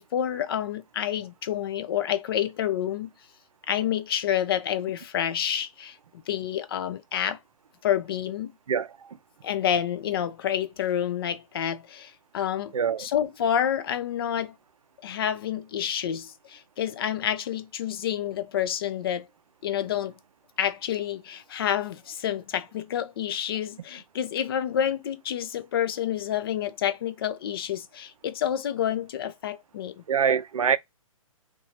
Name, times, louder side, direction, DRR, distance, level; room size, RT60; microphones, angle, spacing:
voice 1, 0.0-3.1 3.7-7.4 7.8-8.5 9.4-12.7 13.0-14.5 15.0-19.3 19.6-20.1 20.6-30.0, left 10 dB, 45° left, 0.4 m, -28 dB
voice 2, 8.7-9.2 12.7-13.1 30.1-30.8, right 7 dB, 80° right, 0.4 m, -25 dB
2.7 x 2.3 x 2.7 m
figure-of-eight pair, 130°, 18 cm